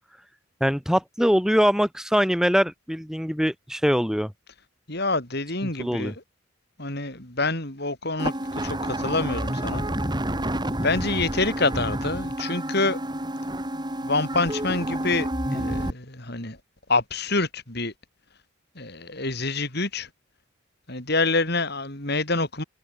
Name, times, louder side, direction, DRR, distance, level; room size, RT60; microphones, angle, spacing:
voice 1, 0.6-4.3 5.8-6.1, equal, ahead, 5.7 m, -22 dB
voice 2, 4.9-6.2 6.8-9.9 10.8-13.0 14.0-16.6 16.9-17.9 18.8-20.1 20.9-22.6, left 3 dB, 50° left, 5.1 m, -27 dB
sound 1, 8.2-15.9, right 1 dB, 20° right, 3.4 m, -29 dB
head